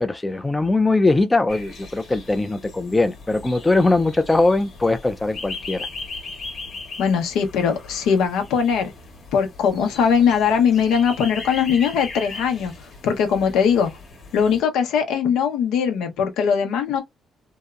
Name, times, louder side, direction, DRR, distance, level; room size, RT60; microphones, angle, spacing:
voice 1, 0.0-5.9, left 2 dB, 15° left, 0.4 m, -20 dB
sound 1, 1.5-14.6, left 3 dB, 55° left, 1.0 m, -38 dB
voice 2, 7.0-8.9 9.3-12.7 13.0-13.9 14.3-17.0, left 7 dB, 90° left, 0.7 m, -20 dB
2.7 x 2.0 x 2.3 m
cardioid pair, 90°, 0 cm